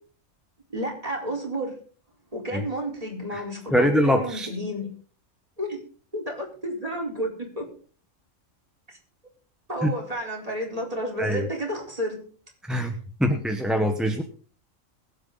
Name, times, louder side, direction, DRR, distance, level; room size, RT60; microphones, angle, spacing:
voice 1, 0.7-1.8 2.3-4.9 5.6-5.8 6.1-7.7 9.7-12.2, right 1 dB, 30° right, 0 dB, 4.4 m, -31 dB
voice 2, 3.7-4.5 9.8-9.9 11.2-11.5 12.7-12.9 13.2-14.2, equal, ahead, 4 dB, 1.3 m, -23 dB
23.0 x 8.2 x 4.1 m, 0.42 s
omnidirectional pair, 1.3 m